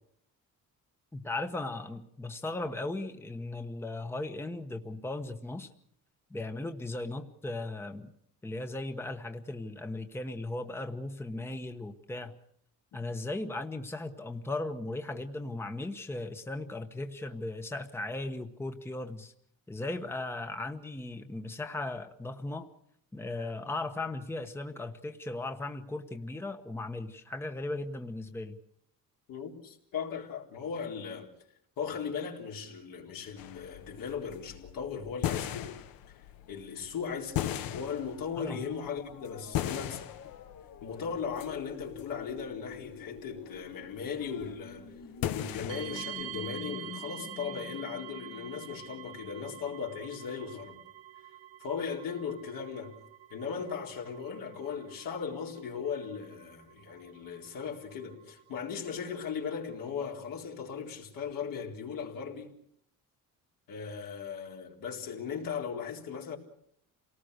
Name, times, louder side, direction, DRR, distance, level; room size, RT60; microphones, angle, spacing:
voice 1, 1.1-5.7 6.3-8.1 8.4-12.4 12.9-19.3 19.7-22.7 23.1-28.6 38.4-38.6, left 2 dB, 5° left, 1.1 m, -37 dB
voice 2, 29.3-31.3 31.8-35.8 36.5-40.1 40.8-44.9 45.3-50.8 51.6-52.9 53.3-62.5 63.7-66.4, left 6 dB, 75° left, 4.1 m, -38 dB
sound 1, 33.4-46.5, left 11 dB, 90° left, 1.1 m, -39 dB
sound 2, 38.0-49.8, left 7 dB, 50° left, 1.7 m, -49 dB
sound 3, 45.7-60.0, right 13 dB, 65° right, 1.6 m, -48 dB
28.0 x 19.0 x 6.5 m
cardioid pair, 135°, 34 cm